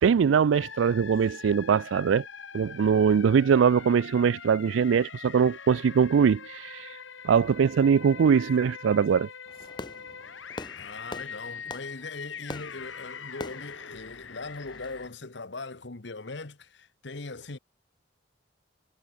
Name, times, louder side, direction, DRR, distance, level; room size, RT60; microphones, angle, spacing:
voice 1, 0.0-2.2 2.5-6.8 7.2-9.3, right 6 dB, 80° right, 0.4 m, -22 dB
sound 1, 0.5-15.1, left 6 dB, 80° left, 1.9 m, -43 dB
Fireworks, 9.5-15.1, left 2 dB, 25° left, 1.6 m, -44 dB
voice 2, 10.7-17.6, left 3 dB, 65° left, 1.3 m, -40 dB
head